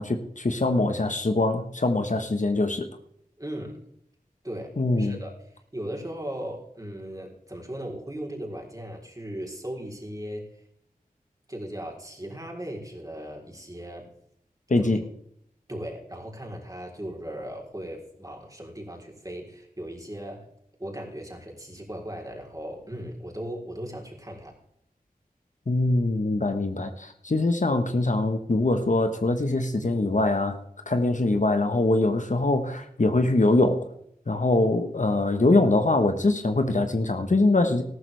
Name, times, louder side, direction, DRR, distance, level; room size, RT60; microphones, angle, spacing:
voice 1, 0.0-2.9 4.8-5.2 14.7-15.0 25.7-30.6 30.9-33.9 34.3-37.8, left 2 dB, 55° left, 7 dB, 1.3 m, -23 dB
voice 2, 3.4-3.8 4.4-10.5 11.5-14.1 14.8-14.9 15.7-20.5 20.8-24.6, right 1 dB, 25° right, 0 dB, 3.9 m, -37 dB
14.0 x 12.5 x 3.4 m, 0.70 s
wide cardioid pair, 45°, 15 cm